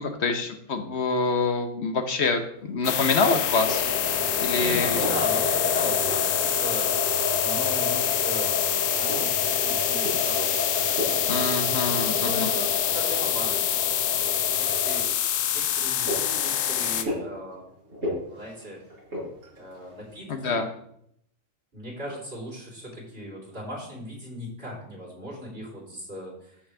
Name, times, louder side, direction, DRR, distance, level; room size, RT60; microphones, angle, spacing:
voice 1, 0.0-5.0 11.3-12.5 20.3-20.7, left 4 dB, 55° left, 7 dB, 1.2 m, -26 dB
sound 1, 2.6-20.4, left 1 dB, 75° right, 5.1 m, -39 dB
sound 2, 2.8-17.0, left 10 dB, 75° left, 1.1 m, -26 dB
sound 3, 3.7-15.0, left 3 dB, 35° left, 3.1 m, -31 dB
voice 2, 4.6-6.9 7.4-11.3 12.2-15.3 15.5-17.7 18.3-18.8 19.6-20.6 21.7-26.6, equal, 45° right, -5 dB, 4.1 m, -38 dB
14.0 x 6.3 x 3.4 m, 0.70 s
omnidirectional pair, 1.4 m